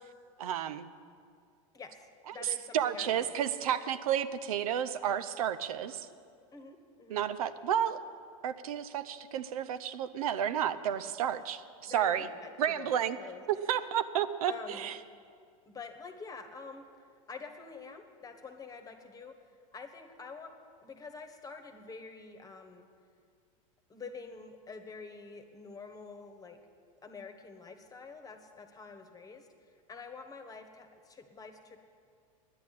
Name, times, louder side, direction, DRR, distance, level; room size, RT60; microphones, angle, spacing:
voice 1, 0.4-0.9 2.3-6.1 7.1-8.0 8.4-12.3 12.6-13.2 13.7-15.0, right 9 dB, 85° right, 13 dB, 0.6 m, -31 dB
voice 2, 1.7-3.3 3.6-3.7 6.5-7.2 11.9-13.4 14.5-14.9 15.7-19.3 19.7-20.5 20.8-22.9 23.9-26.6 27.0-31.8, left 4 dB, 20° left, 6 dB, 1.3 m, -47 dB
10.0 x 9.4 x 8.5 m, 2.2 s
hypercardioid pair, 110°, 18 cm